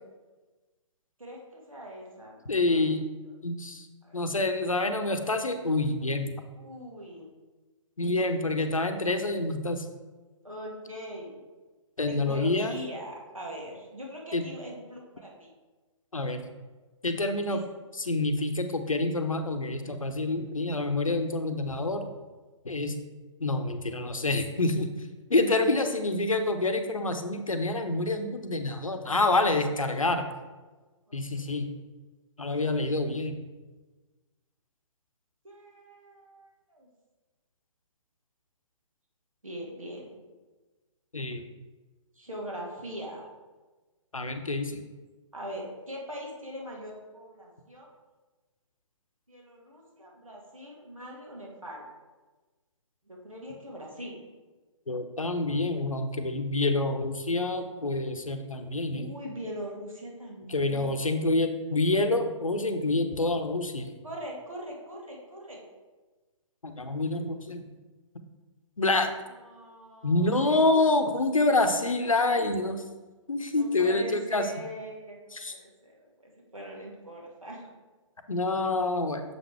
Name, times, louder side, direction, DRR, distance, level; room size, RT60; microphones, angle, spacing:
voice 1, 1.2-2.4 2.7-3.0 4.0-4.3 6.5-7.3 8.0-8.5 10.4-11.4 12.1-15.5 17.5-17.6 25.5-25.9 31.1-31.7 32.4-32.8 35.4-36.9 39.4-40.1 42.1-43.3 45.3-47.9 49.3-51.8 53.1-54.1 58.9-61.2 64.0-65.6 69.3-70.4 73.5-77.7, equal, 85° right, -2 dB, 2.0 m, -42 dB
voice 2, 2.5-3.0 3.4-3.9 4.1-6.3 8.0-9.9 12.0-12.7 14.3-14.4 16.1-16.4 17.0-17.6 17.9-22.1 22.6-22.9 23.4-24.9 25.3-30.3 31.1-31.7 32.4-33.3 41.1-41.4 44.1-44.8 54.9-59.1 60.5-63.9 66.6-67.7 68.8-69.1 70.0-72.8 73.3-74.5 75.3-75.5 78.3-79.2, left 2 dB, 80° left, 7 dB, 0.8 m, -27 dB
7.0 x 5.2 x 3.4 m, 1.3 s
figure-of-eight pair, 135°, 17 cm